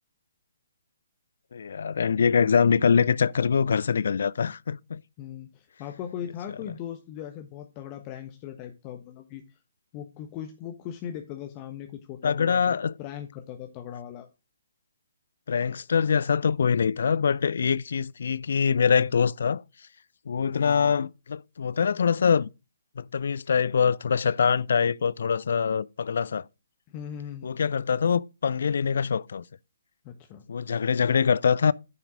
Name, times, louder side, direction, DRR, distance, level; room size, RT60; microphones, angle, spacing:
voice 1, 1.5-5.0 12.2-12.9 15.5-19.6 20.3-22.5 23.0-26.4 27.4-29.4 30.5-31.7, left 6 dB, 60° left, 0.4 m, -24 dB
voice 2, 5.2-9.4 9.9-14.3 20.5-20.9 26.9-27.6 30.0-30.4, left 9 dB, 30° left, 1.2 m, -39 dB
9.4 x 5.8 x 4.8 m
figure-of-eight pair, 135°, 0 cm